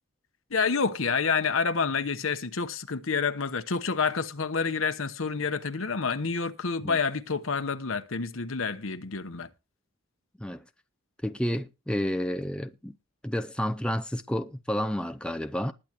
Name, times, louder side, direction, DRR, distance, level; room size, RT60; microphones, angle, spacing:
voice 1, 0.5-9.5, left 5 dB, 75° left, 1.0 m, -28 dB
voice 2, 11.2-13.0 13.2-15.7, equal, 5° left, 0.5 m, -30 dB
20.0 x 8.6 x 2.9 m
head